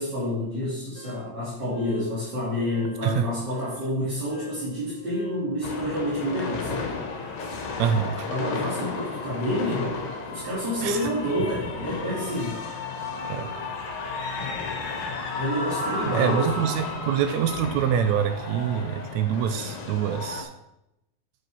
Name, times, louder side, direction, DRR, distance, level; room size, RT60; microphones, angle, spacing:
voice 1, 0.0-7.0 8.3-10.0 10.3-12.6 15.3-16.6, left 1 dB, 35° right, -9 dB, 3.0 m, -28 dB
Wind instrument woodwind instrument, 0.9-5.5, left 1 dB, 60° left, 2.6 m, -50 dB
sound 1, 5.6-20.4, left 4 dB, 85° left, 3.2 m, -33 dB
voice 2, 7.8-8.3 10.8-11.1 13.2-13.5 14.8-14.9 16.0-20.5, right 8 dB, 80° right, 9 dB, 1.7 m, -25 dB
7.5 x 6.5 x 6.2 m, 0.88 s
omnidirectional pair, 3.8 m